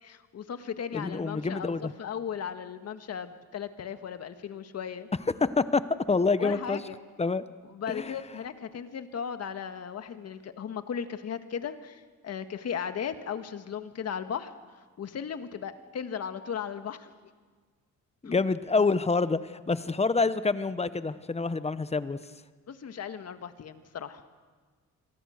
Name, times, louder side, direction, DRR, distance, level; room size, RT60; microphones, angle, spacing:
voice 1, 0.0-5.1 6.4-7.0 7.7-14.5 15.0-17.1 18.2-18.3 22.7-24.2, left 7 dB, 55° left, 9 dB, 1.8 m, -36 dB
voice 2, 0.9-1.9 5.4-5.8 6.1-6.8 7.2-7.4 7.9-8.2 18.2-22.2, left 4 dB, 20° left, 14 dB, 1.0 m, -27 dB
28.5 x 22.0 x 6.6 m, 1.5 s
cardioid pair, 90°, 30 cm